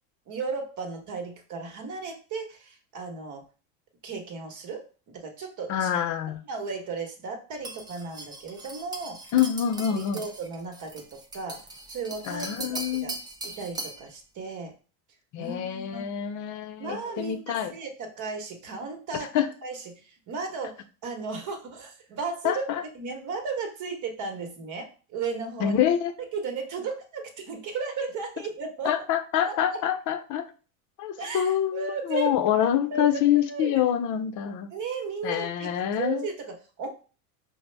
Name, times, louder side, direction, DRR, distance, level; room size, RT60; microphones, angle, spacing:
voice 1, 0.3-3.4 4.0-5.9 6.5-9.2 9.9-11.6 11.9-13.1 13.4-14.7 15.4-16.0 16.8-19.3 19.6-25.8 26.2-29.0 29.4-29.8 31.2-32.3 32.6-33.8 34.7-35.7 36.0-36.9, right 4 dB, 40° right, 4 dB, 1.2 m, -35 dB
voice 2, 5.7-6.4 9.3-10.2 12.3-13.1 15.3-17.7 19.3-19.5 22.4-22.8 25.6-26.1 28.8-30.5 31.0-34.7 35.2-36.3, left 10 dB, 40° left, 9 dB, 0.6 m, -26 dB
sound 1, 7.6-14.1, right 2 dB, 10° right, 0.4 m, -40 dB
4.9 x 2.1 x 3.3 m, 0.36 s
supercardioid pair, 105°, 45 cm